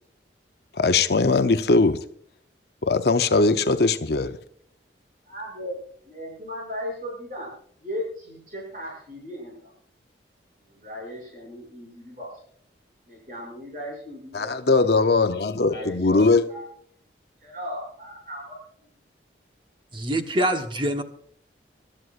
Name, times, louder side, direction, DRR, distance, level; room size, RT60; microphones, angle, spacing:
voice 1, 0.8-2.0 2.8-4.4 14.3-16.5, left 3 dB, 60° left, 0.7 m, -20 dB
voice 2, 5.3-5.8 6.1-7.5 7.8-9.7 10.7-12.3 13.1-14.6 15.7-16.6 17.4-18.6, left 1 dB, 45° right, 6.9 m, -36 dB
voice 3, 19.9-21.0, right 1 dB, 25° right, 1.2 m, -25 dB
25.5 x 12.5 x 2.5 m
head